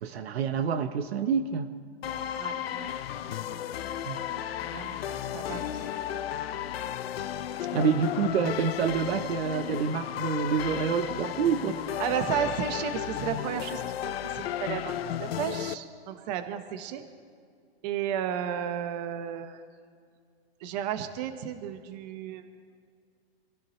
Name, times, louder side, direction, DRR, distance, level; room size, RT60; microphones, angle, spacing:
voice 1, 0.0-1.7 4.1-4.2 7.7-12.0, right 6 dB, 70° right, 7 dB, 1.1 m, -27 dB
sound 1, 2.0-15.7, left 10 dB, 65° left, 0.8 m, -34 dB
voice 2, 2.4-2.9 4.0-4.1 4.3-5.8 12.0-17.0 17.8-19.6 20.6-22.5, right 9 dB, 40° right, 8 dB, 1.4 m, -33 dB
26.5 x 16.0 x 3.3 m, 2.1 s
hypercardioid pair, 150°, 32 cm